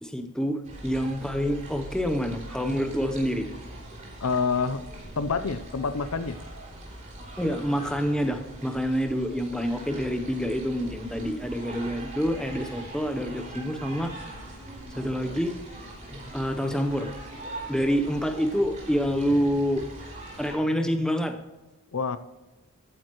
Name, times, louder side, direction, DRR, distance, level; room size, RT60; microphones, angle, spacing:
voice 1, 0.0-3.5 7.4-14.1 14.9-15.5 16.1-17.1 17.7-19.8 20.4-21.4, equal, 5° left, 5 dB, 0.8 m, -27 dB
sound 1, 0.6-20.6, right 1 dB, 35° right, 3.3 m, -42 dB
voice 2, 4.2-4.8 5.2-6.4 21.9-22.2, left 5 dB, 70° left, 12 dB, 0.6 m, -27 dB
14.0 x 9.0 x 3.1 m, 1.1 s
head